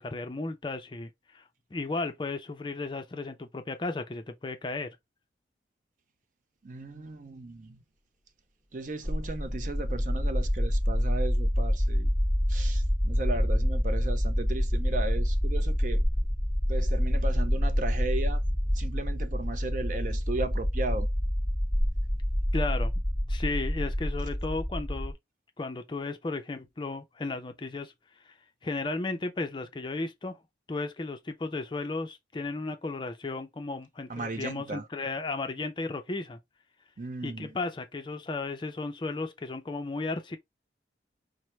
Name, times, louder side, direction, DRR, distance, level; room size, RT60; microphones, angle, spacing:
voice 1, 0.0-1.4 1.7-5.0 22.5-22.9 23.3-25.1 25.6-27.9 28.2-28.3 28.6-30.4 30.7-36.4 37.2-40.4, left 3 dB, 25° left, 0.4 m, -34 dB
voice 2, 6.6-7.8 8.7-12.1 12.5-16.0 16.7-18.4 18.7-21.1 34.1-34.8 37.0-37.5, right 2 dB, 45° right, 0.5 m, -36 dB
sound 1, 9.0-25.1, equal, ahead, 0.9 m, -27 dB
4.3 x 2.0 x 3.1 m
head